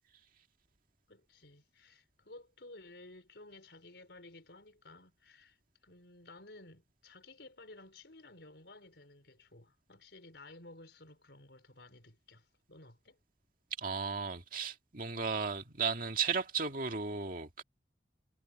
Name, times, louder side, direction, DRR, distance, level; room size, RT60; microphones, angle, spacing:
voice 1, 1.1-5.6 5.8-13.2, left 2 dB, 75° left, 4.6 m, -55 dB
voice 2, 13.8-17.6, right 5 dB, 50° right, 2.1 m, -35 dB
head